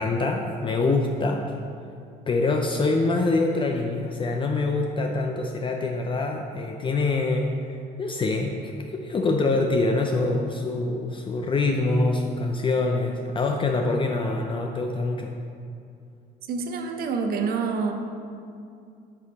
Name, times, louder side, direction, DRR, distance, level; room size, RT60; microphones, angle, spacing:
voice 1, 0.0-1.4 2.3-15.3, left 3 dB, 30° left, 2 dB, 0.5 m, -25 dB
voice 2, 16.5-17.9, right 5 dB, 65° right, 4 dB, 0.8 m, -27 dB
8.8 x 5.1 x 4.1 m, 2.4 s
cardioid pair, 110°, 17 cm